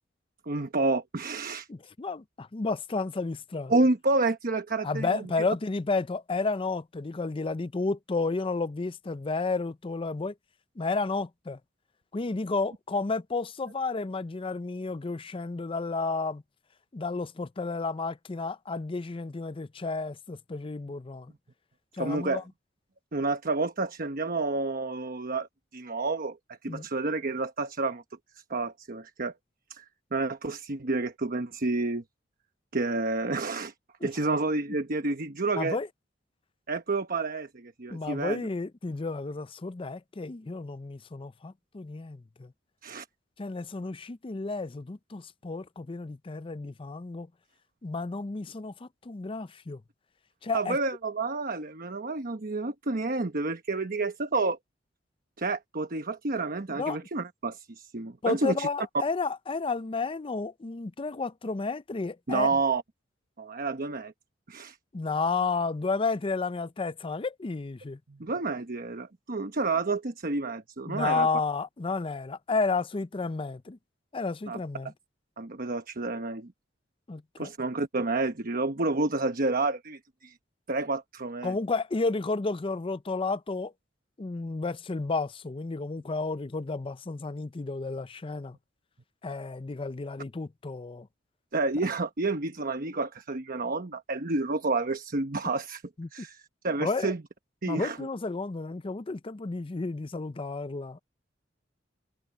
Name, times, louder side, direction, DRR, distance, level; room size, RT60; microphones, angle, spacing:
voice 1, 0.5-1.7 3.7-5.2 22.0-22.4 23.1-25.5 25.7-26.4 26.6-28.0 28.5-29.3 29.7-29.8 30.1-32.0 32.7-33.7 34.0-35.8 36.7-38.4 42.8-43.1 50.5-54.6 55.4-58.7 62.3-62.8 63.4-64.1 64.5-64.8 68.1-71.3 74.5-74.6 75.4-76.5 77.4-80.4 80.7-81.6 91.5-95.8 96.1-97.2 97.6-98.0, right 3 dB, 50° right, 1.1 m, -29 dB
voice 2, 1.7-3.7 4.8-10.3 10.8-11.6 12.1-16.4 16.9-21.3 21.9-22.4 26.7-26.9 34.0-34.1 35.6-35.9 37.9-42.5 43.4-47.3 47.8-49.8 50.4-50.8 56.7-57.0 58.2-62.5 64.9-68.0 70.8-73.8 74.1-74.9 77.1-77.5 81.4-83.7 84.2-88.6 89.2-91.1 96.0-96.1 96.8-97.1 97.7-101.0, left 3 dB, 30° left, 0.5 m, -32 dB
head